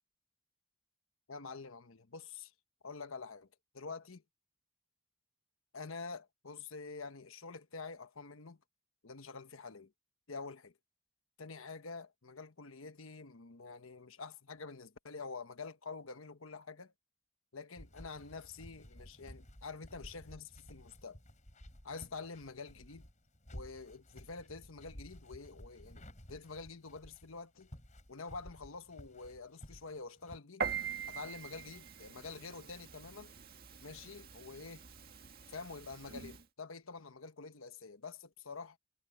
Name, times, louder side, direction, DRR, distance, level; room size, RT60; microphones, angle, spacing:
voice 1, 1.3-2.5 2.8-3.5 3.7-4.2 5.7-8.6 9.0-9.9 10.3-10.7 11.4-16.9 17.5-21.2 21.8-23.1 23.5-27.7 28.1-30.6 31.1-33.3 33.8-34.9 35.5-38.8, left 4 dB, 75° left, 1.2 m, -47 dB
sound 1, 17.8-30.4, equal, 35° left, 5.4 m, -54 dB
Piano, 30.6-36.4, right 6 dB, 45° right, 1.9 m, -43 dB
head